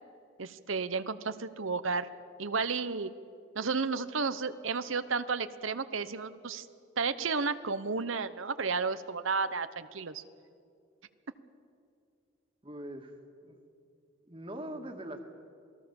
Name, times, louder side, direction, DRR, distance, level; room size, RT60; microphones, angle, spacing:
voice 1, 0.4-2.1 2.4-3.1 3.5-6.7 7.0-10.2, right 4 dB, 80° right, 12 dB, 1.0 m, -32 dB
voice 2, 12.6-13.1 13.4-13.6 14.3-15.2, right 1 dB, 25° right, 4 dB, 2.0 m, -41 dB
28.0 x 19.5 x 7.2 m, 2.4 s
head